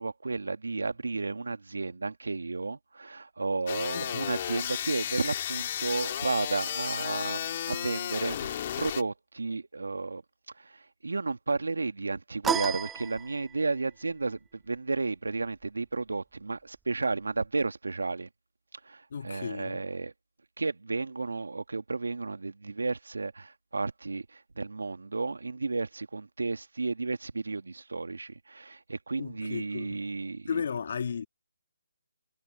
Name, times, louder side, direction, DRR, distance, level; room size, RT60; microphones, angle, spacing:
voice 1, 0.0-10.2 10.6-18.3 18.8-20.1 20.6-30.5, right 3 dB, 75° right, 2.3 m, -33 dB
chainsaw synth, 3.7-9.0, left 10 dB, 35° left, 2.4 m, -33 dB
voice 2, 3.9-4.3 19.1-19.9 29.2-30.0 30.5-31.3, left 6 dB, 50° left, 2.5 m, -35 dB
sound 1, 12.4-13.8, right 7 dB, 10° right, 0.4 m, -32 dB
figure-of-eight pair, 155°, 0 cm